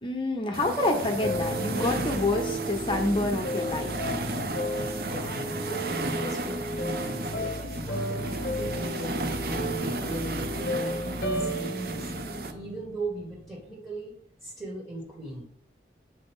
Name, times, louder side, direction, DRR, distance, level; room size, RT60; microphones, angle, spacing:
voice 1, 0.0-4.1, left 2 dB, 30° left, 2 dB, 1.1 m, -28 dB
sound 1, 0.5-12.5, right 2 dB, 55° right, 0.6 m, -34 dB
sound 2, 1.2-13.3, equal, 55° left, 1.2 m, -33 dB
voice 2, 5.1-15.4, right 2 dB, 20° right, -4 dB, 1.7 m, -39 dB
9.0 x 3.9 x 3.7 m, 0.67 s
head